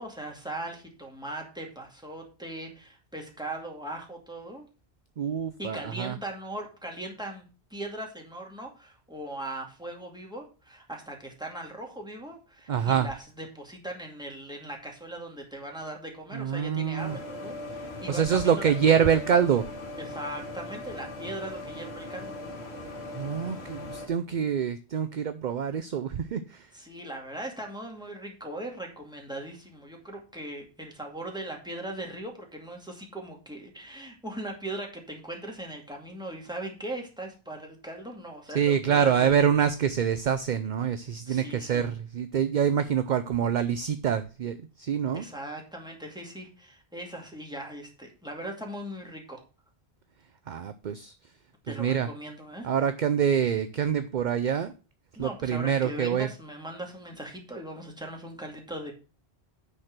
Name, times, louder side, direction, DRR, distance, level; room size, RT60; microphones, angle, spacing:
voice 1, 0.0-4.6 5.6-19.1 20.0-22.3 26.7-39.5 41.3-41.8 45.1-49.4 51.7-52.7 55.2-58.9, right 1 dB, 5° right, 0 dB, 2.3 m, -39 dB
voice 2, 5.2-6.1 12.7-13.1 16.3-17.1 18.1-19.6 23.2-26.4 38.5-44.5 44.9-45.2 50.5-51.1 51.7-52.1 52.6-54.7 55.2-56.3, right 8 dB, 55° right, 10 dB, 0.6 m, -25 dB
sound 1, 17.0-24.1, left 2 dB, 80° left, 1.9 m, -39 dB
10.0 x 4.4 x 6.5 m, 0.34 s
omnidirectional pair, 1.1 m